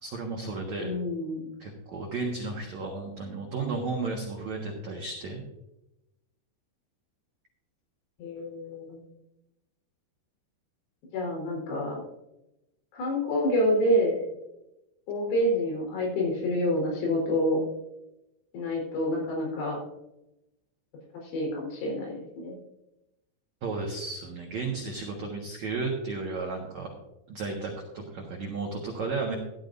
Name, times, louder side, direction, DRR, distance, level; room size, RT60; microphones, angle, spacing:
voice 1, 0.0-0.9 1.6-5.4 23.6-27.0 27.3-29.3, right 3 dB, 90° right, -1 dB, 1.6 m, -33 dB
voice 2, 0.8-1.4 8.2-9.0 11.1-12.0 12.9-14.2 15.1-17.6 18.5-19.8 21.3-22.6, left 1 dB, 75° left, -2 dB, 6.6 m, -27 dB
14.5 x 12.0 x 2.6 m, 0.91 s
omnidirectional pair, 5.9 m